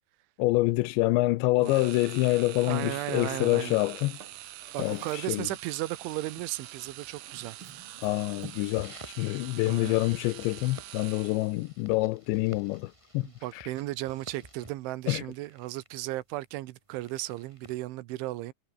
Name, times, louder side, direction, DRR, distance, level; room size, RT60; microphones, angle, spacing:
voice 1, 0.4-4.2 4.8-5.5 8.0-13.3 15.1-15.2, left 20 dB, 80° left, 2.8 m, -27 dB
sound 1, 1.6-11.7, right 14 dB, 70° right, 2.3 m, -45 dB
voice 2, 1.6-1.9 2.7-3.8 4.7-7.6 9.7-10.0 13.2-18.5, right 17 dB, 85° right, 3.5 m, -35 dB
sound 2, 3.1-17.8, right 1 dB, 5° right, 7.8 m, -55 dB
Drawer open or close, 4.2-5.4 6.6-6.9 7.3-8.8, right 6 dB, 35° right, 2.7 m, -49 dB
omnidirectional pair, 5.3 m